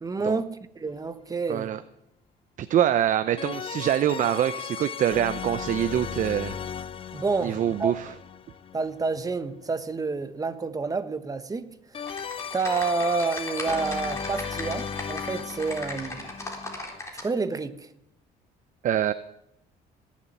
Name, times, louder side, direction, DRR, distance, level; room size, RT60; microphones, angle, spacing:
voice 1, 0.0-1.7 7.1-7.9 8.7-11.7 12.1-12.2 12.5-16.3 17.2-17.9, right 4 dB, 20° right, 1.2 m, -29 dB
sound 1, 0.9-1.0 3.4-9.4 11.9-17.0, left 7 dB, 30° left, 0.5 m, -36 dB
voice 2, 1.5-1.8 2.6-6.6 7.4-8.1 18.8-19.1, right 11 dB, 50° right, 0.6 m, -25 dB
Typing, 12.0-17.3, left 2 dB, 15° left, 3.8 m, -37 dB
18.5 x 7.4 x 9.3 m
cardioid pair, 110°, 17 cm